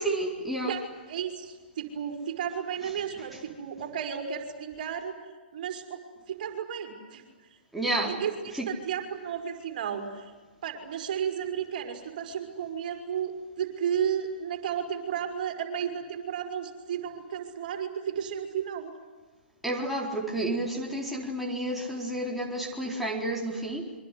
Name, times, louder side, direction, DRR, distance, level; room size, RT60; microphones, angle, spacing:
voice 1, 0.0-0.8 3.3-3.4 7.7-8.2 8.5-8.7 19.6-23.9, right 1 dB, ahead, -2 dB, 4.1 m, -31 dB
voice 2, 0.6-5.2 5.5-6.0 6.3-7.2 7.8-10.3 10.6-18.9, right 8 dB, 50° right, 5 dB, 5.1 m, -33 dB
27.0 x 24.5 x 8.4 m, 1.4 s
figure-of-eight pair, 120°, 5 cm